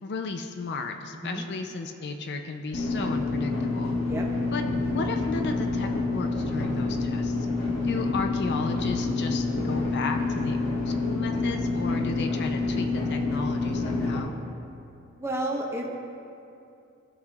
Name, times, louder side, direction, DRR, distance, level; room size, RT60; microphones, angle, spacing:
voice 1, 0.0-4.0 4.5-7.5 7.8-14.3, left 4 dB, 55° left, 5 dB, 0.5 m, -34 dB
voice 2, 1.1-1.4 4.1-4.3 15.2-15.9, right 1 dB, 15° right, -1 dB, 0.9 m, -31 dB
sound 1, 2.7-14.2, left 3 dB, 75° left, 1.5 m, -27 dB
15.5 x 5.6 x 2.4 m, 2.6 s
head